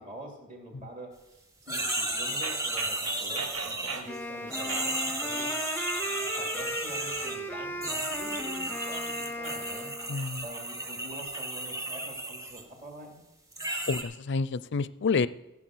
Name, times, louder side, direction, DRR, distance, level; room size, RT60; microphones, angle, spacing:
voice 1, 0.0-5.6 6.3-9.9 10.4-13.2, right 1 dB, 35° right, 0 dB, 2.9 m, -45 dB
sound 1, 1.7-4.2 4.5-7.4 7.8-12.6 13.5-14.0, right 2 dB, 15° right, 1.1 m, -34 dB
sound 2, 2.4-4.2 4.7-5.7 5.9-6.5 7.0-8.8 9.3-11.5, right 5 dB, 60° right, 1.1 m, -41 dB
Wind instrument woodwind instrument, 4.0-10.2, left 1 dB, 10° left, 0.6 m, -36 dB
voice 2, 10.1-10.4 13.9-15.3, left 4 dB, 50° left, 17 dB, 0.4 m, -28 dB
15.0 x 7.4 x 6.2 m, 0.97 s
head